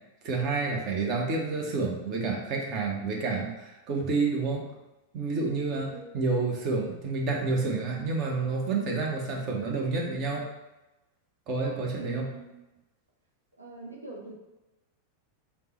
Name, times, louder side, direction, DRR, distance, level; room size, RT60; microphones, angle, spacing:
voice 1, 0.2-4.6 5.1-10.5 11.5-12.3, right 3 dB, 35° right, -1 dB, 0.8 m, -29 dB
voice 2, 5.9-6.2 12.0-12.5 13.6-14.3, right 3 dB, 85° right, -2 dB, 0.6 m, -43 dB
3.4 x 2.1 x 4.2 m, 1.0 s
figure-of-eight pair, 90°, 0 cm